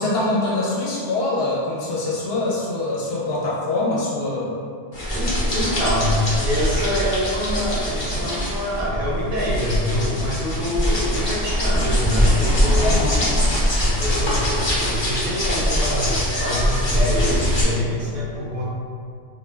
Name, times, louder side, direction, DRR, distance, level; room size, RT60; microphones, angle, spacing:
voice 1, 0.0-4.5 12.8-13.3, left 2 dB, 65° left, -5 dB, 0.7 m, -24 dB
sound 1, 4.9-17.6, equal, 35° left, 0.4 m, -22 dB
voice 2, 5.1-13.0 13.8-18.7, left 1 dB, 60° right, -7 dB, 0.6 m, -25 dB
2.2 x 2.2 x 3.2 m, 2.2 s
omnidirectional pair, 1.2 m